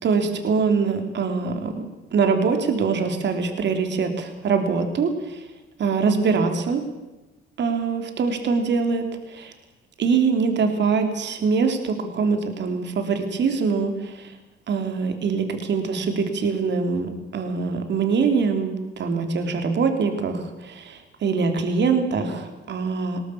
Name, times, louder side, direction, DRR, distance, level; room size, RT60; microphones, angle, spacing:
voice 1, 0.0-1.8 2.1-5.4 5.8-6.8 7.6-9.5 10.0-14.3 14.7-23.2, right 5 dB, 65° right, 6 dB, 3.4 m, -23 dB
20.5 x 18.0 x 8.6 m, 1.1 s
cardioid pair, 90°, 20 cm